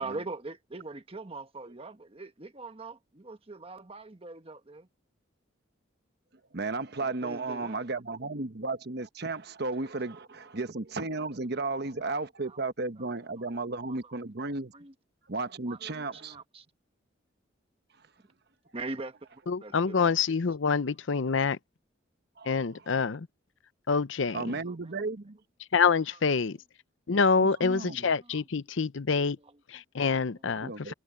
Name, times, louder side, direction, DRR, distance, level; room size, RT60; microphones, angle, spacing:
voice 1, 0.0-4.9 7.0-8.0 9.8-9.9 10.1-10.2 12.0-12.6 13.0-14.3 14.7-14.9 15.6-16.6 18.7-20.2 24.6-25.0 26.1-26.2 27.5-27.7 28.1-28.4 29.4-29.6, right 3 dB, 30° right, 1.3 m, -43 dB
voice 2, 6.5-14.7 15.3-16.4 22.4-22.6 24.3-25.4 27.4-28.1 30.6-30.9, right 3 dB, 55° right, 1.1 m, -34 dB
voice 3, 19.5-21.6 22.4-23.3 23.9-24.6 25.7-26.6 27.1-29.4 29.7-30.9, left 5 dB, 75° left, 0.6 m, -26 dB
head